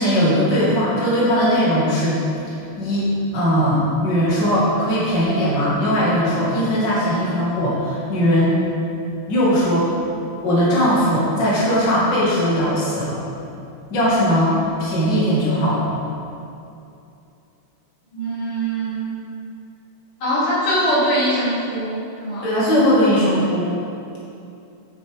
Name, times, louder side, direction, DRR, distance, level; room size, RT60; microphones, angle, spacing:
voice 1, 0.0-2.2 2.8-8.6 9.3-9.9 10.4-13.2 13.9-15.9 22.4-23.7, equal, 55° left, -8 dB, 2.5 m, -19 dB
voice 2, 18.1-19.1 20.2-22.5, right 1 dB, 85° left, -8 dB, 3.2 m, -22 dB
10.5 x 7.7 x 3.5 m, 2.6 s
omnidirectional pair, 2.4 m